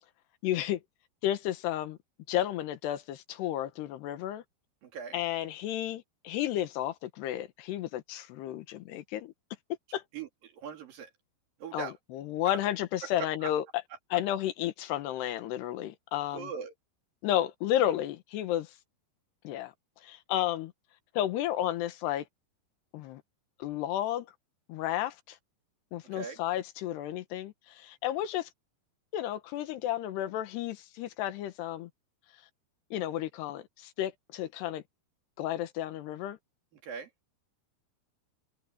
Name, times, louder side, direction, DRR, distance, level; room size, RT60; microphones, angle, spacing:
voice 1, 0.4-0.8 1.2-2.0 2.3-4.4 5.1-9.3 9.9-10.0 11.7-13.7 14.1-16.5 17.2-18.7 19.5-19.7 20.0-20.7 21.2-22.3 22.9-23.2 23.6-24.3 24.7-25.4 25.9-28.5 29.1-31.9 32.9-34.8 35.4-36.4, left 12 dB, 90° left, 3.4 m, -32 dB
voice 2, 4.8-5.2 10.1-11.1 11.6-12.0 12.5-12.7 13.0-13.5 16.3-16.7 26.1-26.4 36.8-37.1, right 6 dB, 60° right, 4.3 m, -40 dB
omnidirectional pair, 4.7 m